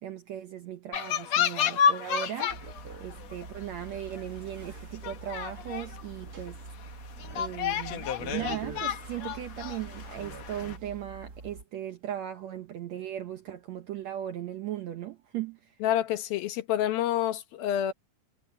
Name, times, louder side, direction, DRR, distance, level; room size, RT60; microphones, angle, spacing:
voice 1, 0.0-2.6 3.0-6.6 7.3-15.7, right 11 dB, 70° right, 1.7 m, -38 dB
sound 1, 0.9-2.8 3.1-3.5 4.1-4.2 4.6-4.7 5.0-6.0 6.5-6.6 7.2-10.8, left 8 dB, 60° left, 2.1 m, -30 dB
sound 2, 2.5-11.6, right 4 dB, 35° right, 1.5 m, -44 dB
voice 2, 15.8-17.9, left 11 dB, 80° left, 3.2 m, -28 dB
omnidirectional pair, 4.2 m